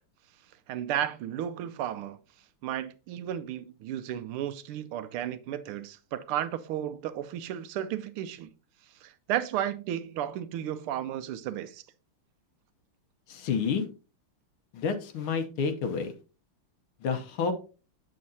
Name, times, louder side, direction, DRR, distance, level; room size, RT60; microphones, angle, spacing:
voice 1, 0.7-2.2 2.6-8.5 9.0-11.8, right 11 dB, 80° right, 1.5 m, -33 dB
voice 2, 13.3-13.8 14.7-16.1 17.0-17.5, left 5 dB, 75° left, 1.8 m, -29 dB
7.6 x 7.4 x 2.7 m
omnidirectional pair, 2.4 m